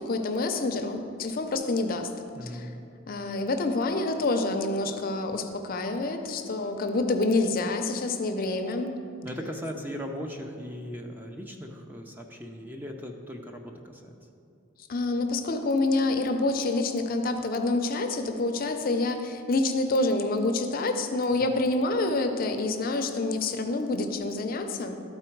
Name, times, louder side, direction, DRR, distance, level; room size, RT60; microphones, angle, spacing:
voice 1, 0.0-2.1 2.4-2.7 3.1-8.9 14.9-25.0, left 2 dB, 45° left, 6 dB, 0.5 m, -27 dB
voice 2, 2.4-2.7 9.2-14.2, equal, 10° right, 2 dB, 0.4 m, -38 dB
12.0 x 4.3 x 4.5 m, 2.6 s
head